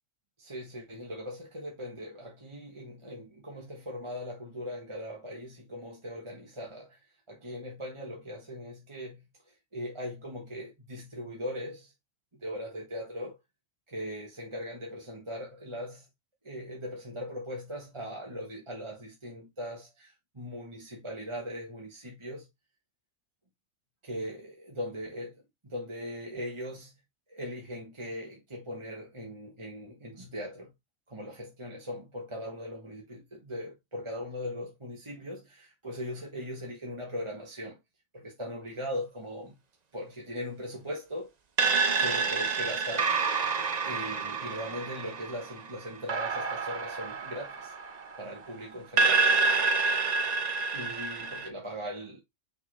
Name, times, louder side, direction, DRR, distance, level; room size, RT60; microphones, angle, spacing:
voice 1, 0.4-7.0 7.3-9.2 9.7-11.9 12.4-13.4 13.9-16.0 16.4-22.4 24.0-26.9 27.3-30.7 31.1-37.8 38.1-39.5 39.9-41.3 42.0-43.4 43.8-47.7 48.2-49.3 50.7-52.2, equal, 25° right, 1.5 m, -39 dB
sound 1, 41.6-48.4 49.0-51.5, right 4 dB, 40° right, 0.7 m, -28 dB
5.9 x 4.0 x 4.2 m
omnidirectional pair, 1.4 m